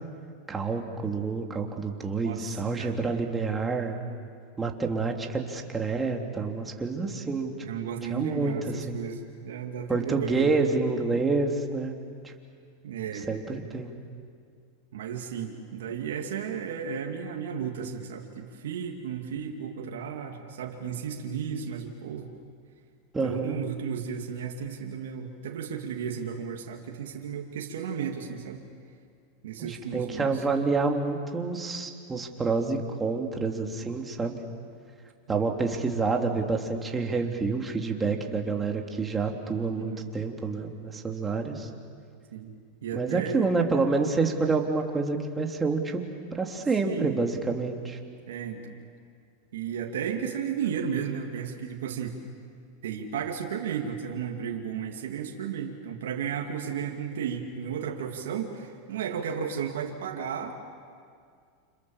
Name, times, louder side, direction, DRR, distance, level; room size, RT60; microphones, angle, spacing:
voice 1, 0.5-4.0 4.6-7.5 8.0-9.0 9.9-11.9 12.2-12.3 13.3-13.9 23.1-23.6 29.6-34.4 35.3-41.7 42.9-46.0 46.3-48.0, right 4 dB, 15° right, 2 dB, 3.1 m, -28 dB
voice 2, 2.2-3.0 7.6-10.5 11.1-11.2 12.8-13.3 14.9-22.3 23.2-28.6 29.4-30.4 35.3-35.6 39.8-40.1 42.3-42.5 42.8-43.5 46.8-47.1 48.3-48.8 49.5-52.2 52.8-60.5, right 7 dB, 80° right, 1 dB, 2.4 m, -34 dB
29.5 x 27.5 x 7.3 m, 2.2 s
hypercardioid pair, 115°, 0 cm